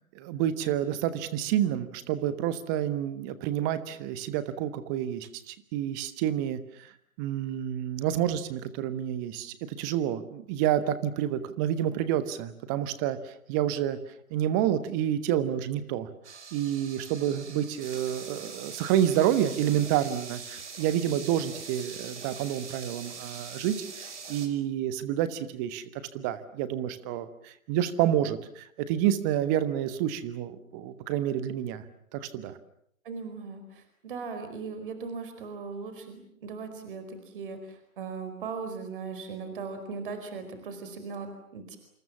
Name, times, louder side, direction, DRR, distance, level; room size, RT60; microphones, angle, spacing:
voice 1, 0.1-6.9 7.2-14.0 14.3-16.1 16.5-25.8 26.1-31.8 32.1-32.6, right 11 dB, 15° right, 13 dB, 1.1 m, -29 dB
sound 1, 16.2-24.5, right 5 dB, 55° right, 5.5 m, -43 dB
voice 2, 33.0-41.8, right 5 dB, 40° right, 8 dB, 4.9 m, -38 dB
27.5 x 27.5 x 7.4 m, 0.71 s
figure-of-eight pair, 145°, 41 cm